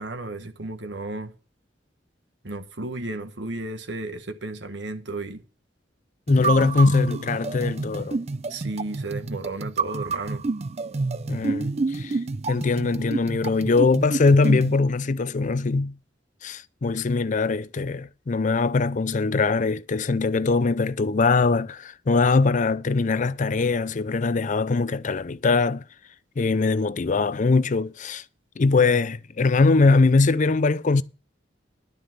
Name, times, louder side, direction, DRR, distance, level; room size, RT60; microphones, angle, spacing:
voice 1, 0.0-1.3 2.4-5.4 6.4-6.7 8.5-10.4, right 2 dB, 75° right, 1.6 m, -33 dB
voice 2, 6.3-8.2 11.3-12.2 12.5-16.0 16.4-25.8 26.4-28.2 28.6-31.0, left 3 dB, 45° left, 0.5 m, -22 dB
sound 1, 6.3-14.8, right 3 dB, 35° right, 0.5 m, -29 dB
12.0 x 5.3 x 7.4 m
head